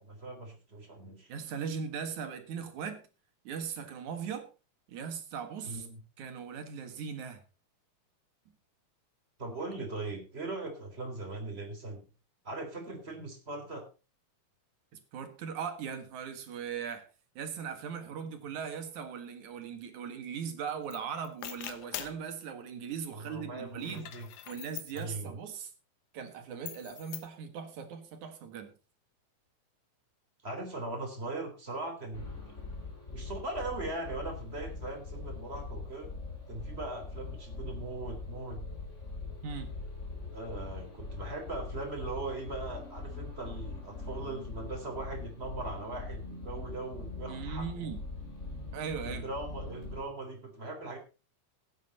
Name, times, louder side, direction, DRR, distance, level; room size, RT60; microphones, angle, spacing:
voice 1, 0.0-1.3 5.6-6.0 9.4-12.0 12.4-13.9 23.1-24.3 24.9-25.4 30.4-32.3 33.1-36.1 36.5-38.6 40.3-47.9 49.0-51.0, right 2 dB, 20° right, 3 dB, 3.7 m, -40 dB
voice 2, 1.3-3.0 3.4-4.5 4.9-5.9 6.2-7.4 15.1-17.1 17.4-24.1 24.5-25.7 26.1-28.7 39.4-39.7 47.3-48.0 48.7-49.3, right 7 dB, 65° right, 8 dB, 2.9 m, -39 dB
sound 1, 20.9-21.0 21.2-22.2 23.7-25.0 26.7-27.3, left 11 dB, 70° left, 2.5 m, -43 dB
sound 2, 32.1-50.0, left 3 dB, 20° left, 4.3 m, -42 dB
16.0 x 9.6 x 4.2 m, 0.32 s
omnidirectional pair, 3.8 m